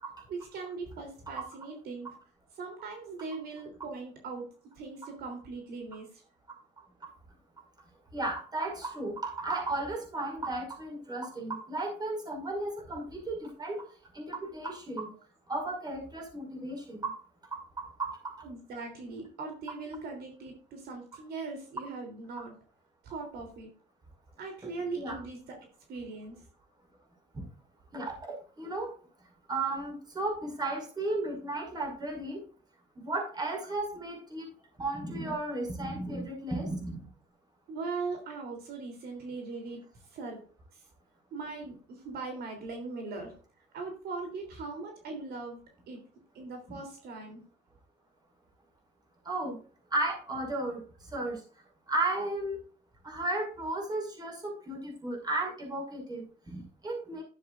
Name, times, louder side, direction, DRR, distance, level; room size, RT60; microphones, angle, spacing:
voice 1, 0.3-2.1 2.6-4.5 4.7-6.2 18.4-22.5 23.0-23.7 24.4-25.4 25.9-26.4 37.7-39.8 40.1-40.4 40.7-40.8 41.3-43.3 43.7-45.6 45.9-46.0 46.3-47.4, right 4 dB, 70° right, 3 dB, 3.3 m, -40 dB
voice 2, 8.1-13.9 14.1-15.1 15.5-17.2 17.5-18.4 22.4-22.5 24.9-25.2 27.9-28.9 29.5-32.4 33.0-34.5 34.8-37.0 46.7-46.8 49.3-49.6 49.9-50.8 51.1-51.4 51.9-52.6 53.0-57.2, right 2 dB, 25° right, 2 dB, 5.6 m, -34 dB
12.0 x 9.7 x 2.5 m, 0.40 s
cardioid pair, 110°, 17 cm